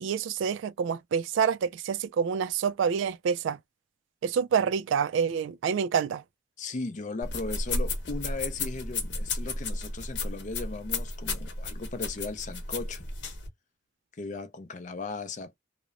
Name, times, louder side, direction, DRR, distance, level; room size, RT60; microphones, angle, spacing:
voice 1, 0.0-3.6 4.2-6.2, right 7 dB, 80° right, 0.3 m, -27 dB
voice 2, 6.6-13.1 14.2-15.6, left 3 dB, 40° left, 0.4 m, -37 dB
sound 1, 7.2-13.5, left 3 dB, 70° left, 0.9 m, -33 dB
2.8 x 2.0 x 2.4 m
head